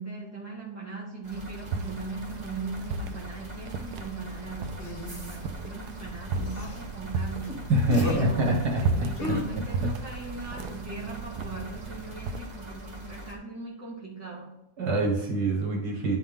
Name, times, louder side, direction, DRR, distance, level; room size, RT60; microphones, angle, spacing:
voice 1, 0.0-7.7 8.0-14.6, right 4 dB, 10° right, -4 dB, 1.9 m, -39 dB
sound 1, 1.2-13.4, equal, 25° right, 1.4 m, -43 dB
sound 2, 1.6-12.4, right 4 dB, 90° right, 1.2 m, -35 dB
sound 3, 4.8-5.5 6.4-6.8 7.4-7.6 7.9-8.3 9.2-9.4, left 3 dB, 50° left, 1.4 m, -34 dB
voice 2, 7.7-9.9 14.8-16.2, right 1 dB, 75° right, -1 dB, 2.1 m, -26 dB
10.5 x 4.3 x 3.7 m, 0.94 s
omnidirectional pair, 1.7 m